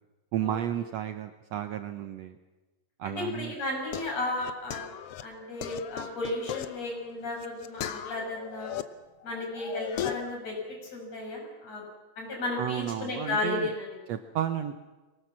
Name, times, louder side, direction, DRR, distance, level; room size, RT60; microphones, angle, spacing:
voice 1, 0.3-2.4 3.0-3.5 12.6-13.7 14.1-14.8, right 10 dB, 70° right, 9 dB, 1.7 m, -32 dB
voice 2, 3.0-4.8 5.2-8.7 9.2-10.6 10.9-11.8 12.2-14.0, left 2 dB, 55° left, 0 dB, 7.4 m, -34 dB
sound 1, 3.4-8.8 9.2-10.4, left 10 dB, 80° left, 1.3 m, -38 dB
23.0 x 19.0 x 7.3 m, 1.2 s
omnidirectional pair, 3.7 m